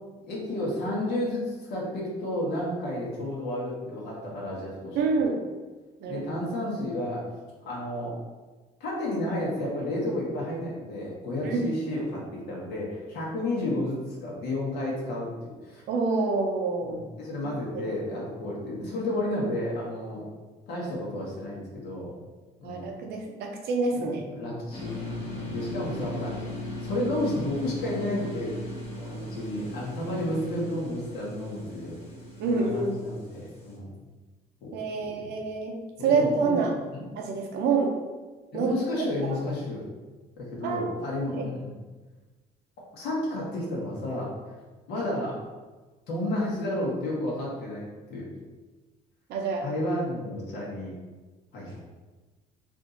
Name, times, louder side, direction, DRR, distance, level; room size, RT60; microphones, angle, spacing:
voice 1, 0.2-5.0 6.1-7.2 7.6-8.1 8.8-15.8 16.8-20.3 20.7-22.1 22.6-22.9 24.0-26.5 26.8-28.5 29.0-32.0 32.5-33.9 34.6-35.3 36.0-36.6 36.9-37.0 38.5-39.9 40.4-41.8 42.9-44.5 44.9-45.4 46.1-48.3 49.6-50.9 51.5-51.8, left 1 dB, 75° left, -5 dB, 1.4 m, -32 dB
voice 2, 5.0-5.4 6.0-6.3 11.4-11.7 15.9-17.0 17.4-18.0 22.6-24.2 32.4-33.0 34.7-36.7 37.2-37.9 38.5-38.7 39.2-39.4 40.6-40.9 41.3-41.4 49.3-49.7, right 4 dB, 75° right, 2 dB, 0.7 m, -27 dB
sound 1, 24.7-33.8, left 1 dB, 35° left, 1.2 m, -38 dB
3.6 x 2.7 x 3.8 m, 1.3 s
cardioid pair, 110°, 17 cm